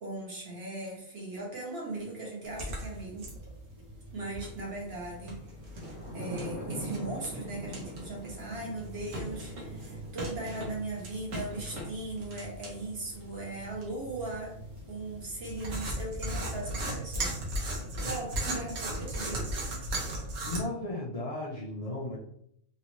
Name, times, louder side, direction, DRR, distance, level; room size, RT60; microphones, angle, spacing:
voice 1, 0.0-3.3 4.1-5.4 6.1-14.6 14.9-17.4 18.0-19.6, right 2 dB, 50° right, -2 dB, 1.2 m, -38 dB
sound 1, 2.2-2.3 4.6-18.4, equal, 25° right, 1.0 m, -46 dB
sound 2, 2.4-20.6, right 1 dB, 75° right, 1.3 m, -38 dB
voice 2, 20.4-22.2, left 2 dB, 45° left, -4 dB, 0.4 m, -36 dB
3.2 x 2.7 x 2.9 m, 0.69 s
omnidirectional pair, 1.4 m